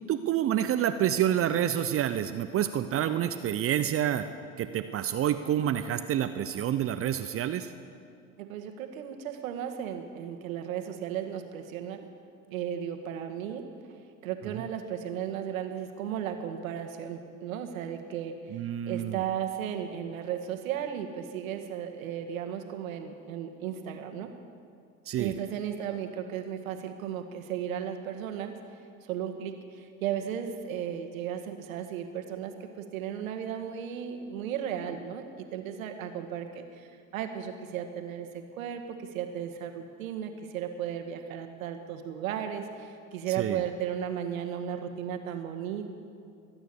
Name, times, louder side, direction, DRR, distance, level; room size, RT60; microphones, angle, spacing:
voice 1, 0.1-4.3 4.6-7.7 18.5-19.2 25.1-25.3 43.3-43.6, right 10 dB, 35° right, 10 dB, 0.7 m, -28 dB
voice 2, 8.4-12.0 12.5-13.6 14.2-18.3 18.8-24.3 25.2-28.5 29.0-35.2 35.5-36.9 37.1-45.9, right 9 dB, 75° right, 6 dB, 1.8 m, -35 dB
23.5 x 9.1 x 6.9 m, 2.4 s
hypercardioid pair, 85°, 41 cm